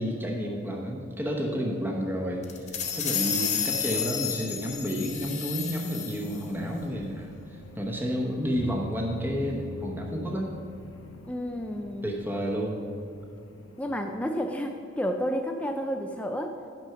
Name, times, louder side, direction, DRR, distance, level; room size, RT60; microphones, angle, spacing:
voice 1, 0.0-10.5 12.0-12.9, equal, 10° right, 0 dB, 0.9 m, -31 dB
sound 1, 2.4-6.4, left 8 dB, 35° left, 0.9 m, -31 dB
sound 2, 6.2-14.2, left 3 dB, 70° left, 1.0 m, -45 dB
voice 2, 11.3-12.0 13.8-16.7, equal, 5° left, 4 dB, 0.4 m, -31 dB
10.5 x 6.1 x 5.7 m, 2.6 s
head